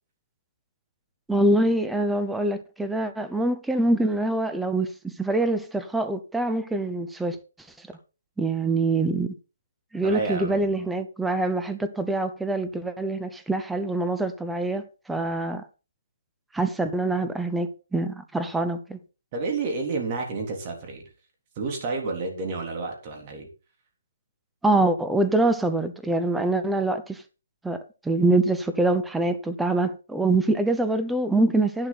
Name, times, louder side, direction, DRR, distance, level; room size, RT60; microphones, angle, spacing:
voice 1, 1.3-7.4 8.4-9.3 9.9-15.6 16.5-19.0 24.6-27.2 27.6-31.9, right 2 dB, 5° right, 0.8 m, -24 dB
voice 2, 10.0-10.7 19.3-21.0 21.6-23.5, right 3 dB, 25° right, 3.6 m, -30 dB
11.0 x 11.0 x 4.2 m
hypercardioid pair, 165°, 0 cm